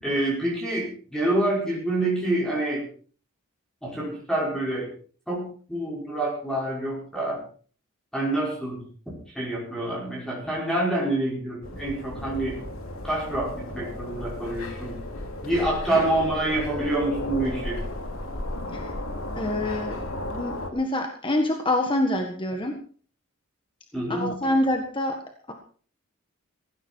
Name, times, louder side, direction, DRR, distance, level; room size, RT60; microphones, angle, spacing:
voice 1, 0.0-2.8 3.8-4.9 5.3-7.4 8.1-12.6 13.0-15.0 15.4-17.8 23.9-24.4, right 1 dB, ahead, -4 dB, 5.4 m, -27 dB
sound 1, 11.6-20.7, left 1 dB, 70° left, 2.8 m, -34 dB
voice 2, 19.3-22.8 24.1-25.2 25.5-25.6, left 1 dB, 25° left, 4 dB, 1.5 m, -26 dB
16.5 x 16.0 x 4.6 m, 0.43 s
head